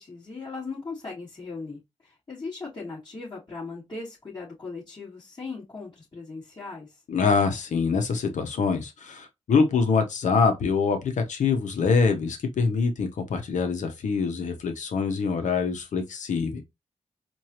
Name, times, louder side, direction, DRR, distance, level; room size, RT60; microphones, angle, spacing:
voice 1, 0.0-6.9, left 4 dB, 35° left, 2.9 m, -38 dB
voice 2, 7.1-16.6, left 5 dB, 80° left, 1.0 m, -24 dB
4.5 x 2.7 x 3.0 m
cardioid pair, 65°, 13 cm